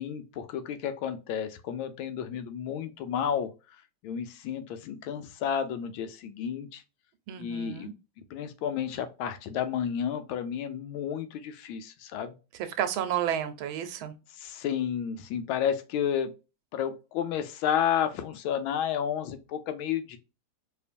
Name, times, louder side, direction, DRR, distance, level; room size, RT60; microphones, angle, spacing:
voice 1, 0.0-3.5 4.0-6.8 7.4-7.9 8.3-12.3 14.3-16.3 16.7-20.2, left 8 dB, 85° left, 1.5 m, -31 dB
voice 2, 7.3-7.9 12.5-14.1, right 10 dB, 85° right, 1.4 m, -31 dB
4.3 x 2.9 x 2.5 m
omnidirectional pair, 2.2 m